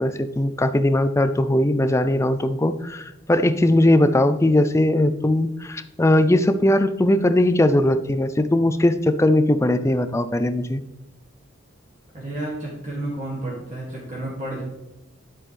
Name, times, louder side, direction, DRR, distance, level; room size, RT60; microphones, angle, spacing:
voice 1, 0.0-10.8, left 1 dB, 15° left, 10 dB, 0.4 m, -19 dB
voice 2, 12.1-14.6, right 1 dB, 35° right, -5 dB, 2.3 m, -31 dB
10.0 x 7.5 x 3.4 m, 0.96 s
head